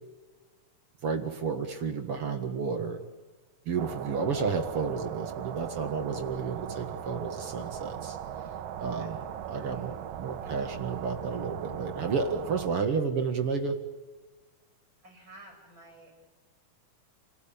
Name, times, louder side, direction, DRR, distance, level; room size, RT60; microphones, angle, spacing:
voice 1, 1.0-3.0 3.7-8.2 8.8-9.2 9.5-13.8, right 5 dB, 50° right, 6 dB, 2.2 m, -31 dB
sound 1, 3.8-12.7, right 9 dB, 75° right, 2.8 m, -39 dB
voice 2, 8.8-10.0 15.0-16.2, right 2 dB, 35° right, 3 dB, 8.8 m, -53 dB
30.0 x 18.0 x 8.7 m, 1.3 s
omnidirectional pair, 4.0 m